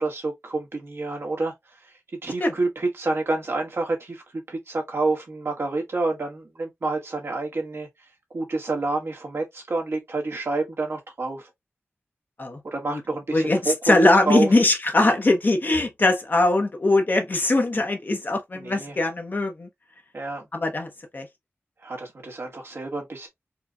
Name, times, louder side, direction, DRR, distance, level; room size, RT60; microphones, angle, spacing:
voice 1, 0.0-7.9 8.3-11.5 12.6-14.5 18.5-19.0 20.1-20.5 21.8-23.3, right 3 dB, 60° right, 1.3 m, -28 dB
voice 2, 13.3-19.7 20.5-21.3, left 2 dB, 45° left, 0.8 m, -21 dB
4.4 x 2.2 x 2.4 m
wide cardioid pair, 105°, 5 cm